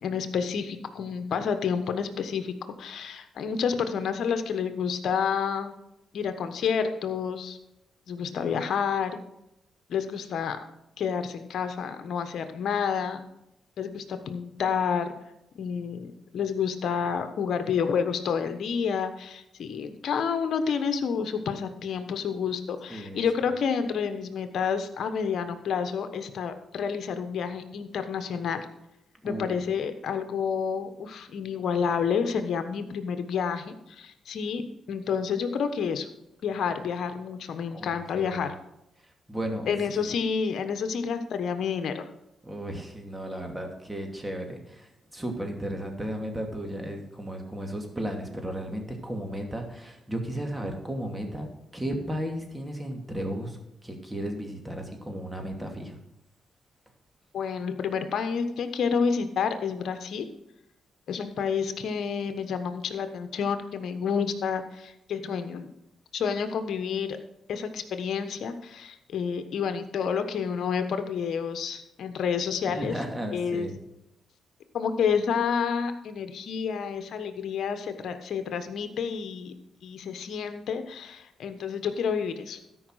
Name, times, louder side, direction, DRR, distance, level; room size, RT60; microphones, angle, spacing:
voice 1, 0.0-5.7 6.1-7.6 8.1-9.2 9.9-10.6 11.0-13.2 13.8-15.2 15.6-28.6 29.2-36.1 36.4-38.5 39.7-42.1 57.3-60.3 61.1-65.7 66.1-67.2 67.5-72.9 73.3-73.7 74.7-79.5 79.8-82.6, left 6 dB, 70° left, 8 dB, 1.1 m, -29 dB
voice 2, 22.9-23.2 29.2-29.6 37.7-38.5 39.3-40.1 42.4-56.0 72.8-73.8, right 1 dB, 10° right, 3 dB, 2.7 m, -34 dB
13.0 x 5.6 x 6.4 m, 0.85 s
supercardioid pair, 65°, 0 cm